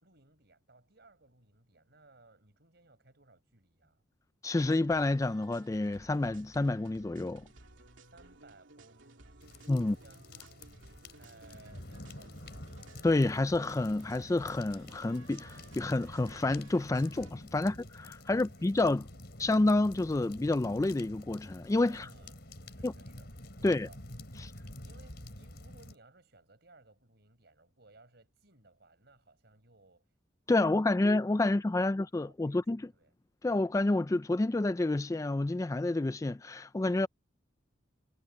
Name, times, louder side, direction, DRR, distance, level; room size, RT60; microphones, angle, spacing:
voice 1, 0.0-4.0 8.1-12.7 17.5-18.8 21.9-24.0 24.8-30.1 30.6-31.1 32.2-32.7 32.9-33.1, right 2 dB, 55° right, 5.5 m, -61 dB
voice 2, 4.4-7.4 9.7-10.0 13.0-17.8 18.1-19.1 19.4-22.1 22.8-22.9 23.6-23.9 24.4-24.5 30.5-32.8 33.4-37.1, left 2 dB, 15° left, 0.3 m, -29 dB
sound 1, 4.5-17.3, right 2 dB, 75° right, 2.7 m, -57 dB
sound 2, 9.4-26.0, left 1 dB, 55° left, 5.1 m, -49 dB
head